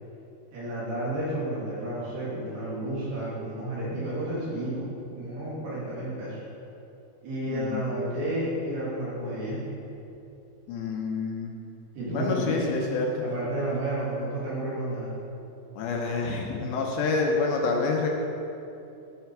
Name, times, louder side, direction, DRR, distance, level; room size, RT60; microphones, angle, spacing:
voice 1, 0.5-6.4 7.2-9.6 11.9-12.7 13.2-15.2, right 1 dB, 75° right, -8 dB, 4.4 m, -31 dB
voice 2, 7.5-7.8 10.7-11.5 12.1-13.1 15.8-18.1, left 4 dB, 80° left, 0 dB, 2.5 m, -27 dB
10.5 x 5.7 x 4.6 m, 2.8 s
omnidirectional pair, 4.6 m